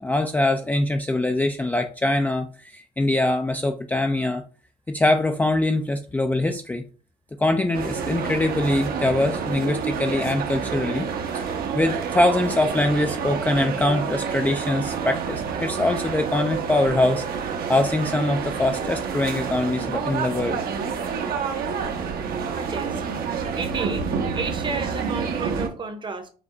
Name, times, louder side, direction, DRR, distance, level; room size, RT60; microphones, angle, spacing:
voice 1, 0.0-4.4 4.9-6.8 7.4-11.1 11.3-11.5 11.7-20.6, left 2 dB, 10° left, 0.4 m, -23 dB
sound 1, 7.7-25.7, right 6 dB, 65° right, 0.9 m, -28 dB
voice 2, 22.7-26.3, right 4 dB, 30° right, 0.8 m, -32 dB
5.0 x 2.2 x 3.8 m
cardioid pair, 110°, 17 cm